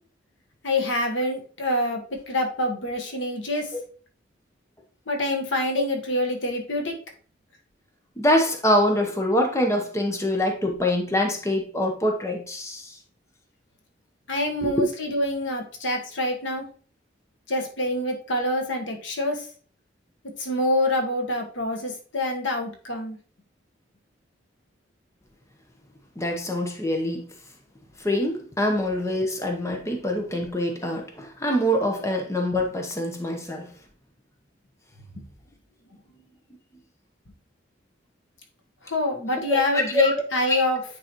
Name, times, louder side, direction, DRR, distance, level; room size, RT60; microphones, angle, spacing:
voice 1, 0.6-3.7 5.1-7.0 14.3-16.6 17.5-19.5 20.4-23.2 38.8-40.8, left 1 dB, 90° left, 3 dB, 1.3 m, -26 dB
voice 2, 8.2-13.0 14.6-14.8 26.2-27.2 28.0-33.7 39.5-40.1, left 1 dB, 15° left, 3 dB, 0.9 m, -25 dB
9.1 x 4.0 x 3.0 m, 0.43 s
head